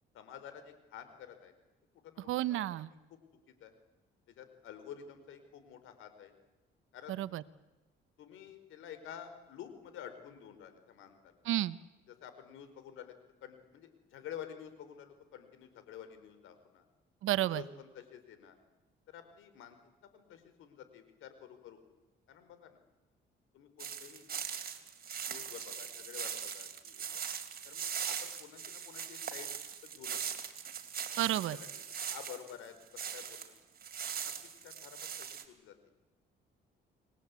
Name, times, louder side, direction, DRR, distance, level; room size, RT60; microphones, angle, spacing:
voice 1, 0.1-1.5 2.0-2.6 3.1-3.2 3.6-3.7 4.3-6.3 6.9-7.2 8.2-11.4 12.1-16.9 17.4-18.6 19.1-19.8 20.0-21.8 22.3-22.8 23.5-24.2 24.8-24.9 25.2-27.1 27.6-29.6 29.8-30.2 31.2-31.7 32.1-33.6 34.1-35.8, left 9 dB, 85° left, 10 dB, 4.5 m, -50 dB
voice 2, 2.3-2.9 7.1-7.4 11.4-11.8 17.2-17.6 31.2-31.6, right 14 dB, 85° right, 16 dB, 1.1 m, -31 dB
sound 1, 23.8-33.5 33.8-35.4, right 7 dB, 50° right, 3.3 m, -40 dB
30.0 x 22.5 x 8.4 m, 1.1 s
cardioid pair, 90°, 20 cm